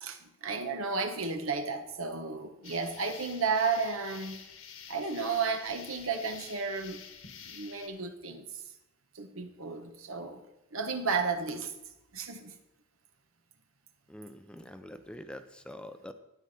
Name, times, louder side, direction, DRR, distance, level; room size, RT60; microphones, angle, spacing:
voice 1, 0.0-4.4 4.9-7.0 7.5-8.5 9.1-10.4 10.7-11.7 12.1-12.5, right 4 dB, 80° right, 1.2 m, -33 dB
sound 1, 2.6-7.9, left 7 dB, 80° left, 1.6 m, -49 dB
voice 2, 14.1-16.1, left 1 dB, 5° left, 0.5 m, -45 dB
13.0 x 9.7 x 4.2 m
head